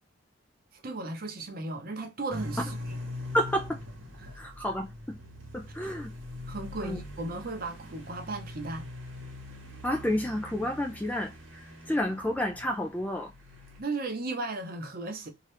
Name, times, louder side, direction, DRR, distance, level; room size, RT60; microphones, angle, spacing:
voice 1, 0.7-3.0 4.2-4.4 5.8-5.9 6.5-8.9 13.8-15.3, right 2 dB, 45° right, 0.7 m, -36 dB
sound 1, 2.3-13.8, left 1 dB, 75° right, 1.2 m, -42 dB
voice 2, 3.3-3.8 4.4-5.2 5.5-6.1 6.8-7.0 9.8-13.3, equal, 10° left, 0.3 m, -30 dB
2.7 x 2.3 x 3.3 m
head